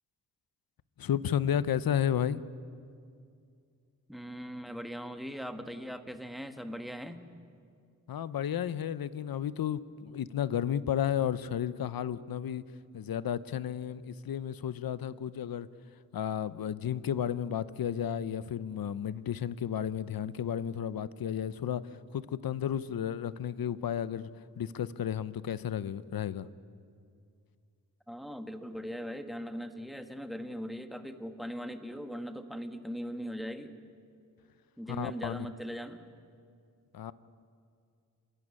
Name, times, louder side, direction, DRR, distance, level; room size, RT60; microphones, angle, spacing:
voice 1, 1.0-2.4 8.1-12.6 12.9-15.7 16.1-21.8 22.1-24.3 24.6-26.5 34.9-35.5 36.9-37.1, left 9 dB, 75° left, 0.8 m, -32 dB
voice 2, 4.1-7.2 28.1-33.8 34.8-36.1, equal, ahead, 1.4 m, -40 dB
27.0 x 14.0 x 9.8 m
wide cardioid pair, 100°, 35 cm